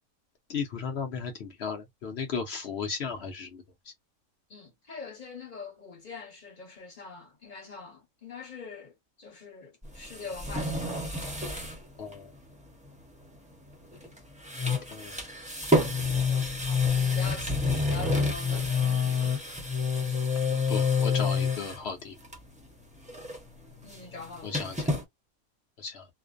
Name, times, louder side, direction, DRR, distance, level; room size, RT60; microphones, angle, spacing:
voice 1, 0.5-3.6 12.0-12.3 14.7-15.2 20.7-22.2 24.4-24.9 25.8-26.1, left 5 dB, 60° left, 0.8 m, -35 dB
voice 2, 4.5-11.0 16.3-19.6 23.8-24.7, left 4 dB, 40° left, 1.0 m, -44 dB
sound 1, 9.8-11.8 12.1-12.2 13.9-14.2 14.4-21.8 22.2-22.7 22.9-25.0, left 4 dB, 10° right, 0.3 m, -28 dB
2.5 x 2.1 x 2.3 m
omnidirectional pair, 1.5 m